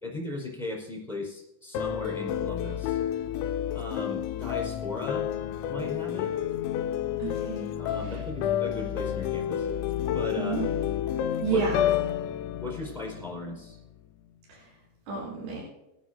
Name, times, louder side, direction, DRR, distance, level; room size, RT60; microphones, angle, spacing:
voice 1, 0.0-3.0 3.7-5.3 5.7-6.3 7.8-9.7 10.1-10.6 11.5-11.6 12.6-13.8, left 2 dB, ahead, -1 dB, 3.8 m, -37 dB
sound 1, 1.7-13.9, left 10 dB, 85° left, 3.0 m, -30 dB
voice 2, 7.2-7.7 8.0-8.2 10.4-11.0 11.4-11.9 14.5-14.7 15.1-15.6, right 4 dB, 65° right, -6 dB, 5.3 m, -31 dB
22.0 x 11.0 x 2.6 m, 0.93 s
omnidirectional pair, 5.3 m